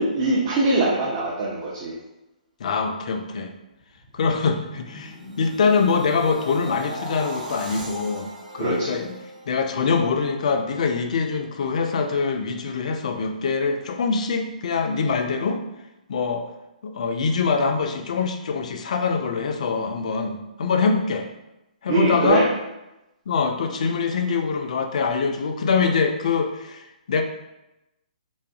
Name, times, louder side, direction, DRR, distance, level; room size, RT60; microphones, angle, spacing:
voice 1, 0.0-1.9 8.6-9.0 21.9-22.5, right 2 dB, 35° right, -6 dB, 0.5 m, -22 dB
voice 2, 2.6-3.5 4.1-8.3 8.5-9.1 9.5-15.6 16.1-16.5 16.8-21.3 21.8-22.5 23.3-27.2, left 5 dB, 55° left, 5 dB, 0.3 m, -24 dB
sound 1, 3.8-10.1 10.5-10.8, equal, 65° right, 0.7 m, -38 dB
2.5 x 2.4 x 2.3 m, 0.94 s
figure-of-eight pair, 125°, 5 cm